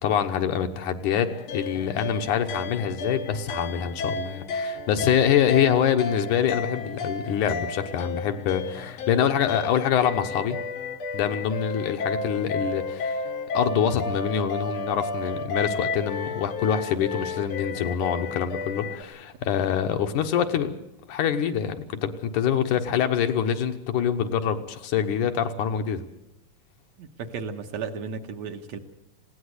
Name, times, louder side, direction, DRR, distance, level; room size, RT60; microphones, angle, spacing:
voice 1, 0.0-10.6 11.1-13.2 13.5-20.8 21.1-26.0, left 8 dB, 75° left, 6 dB, 2.5 m, -25 dB
sound 1, 1.3-19.0, left 3 dB, 60° left, 1.5 m, -32 dB
voice 2, 27.0-28.8, right 5 dB, 65° right, 5 dB, 2.3 m, -34 dB
20.0 x 17.0 x 8.1 m, 0.82 s
omnidirectional pair, 3.7 m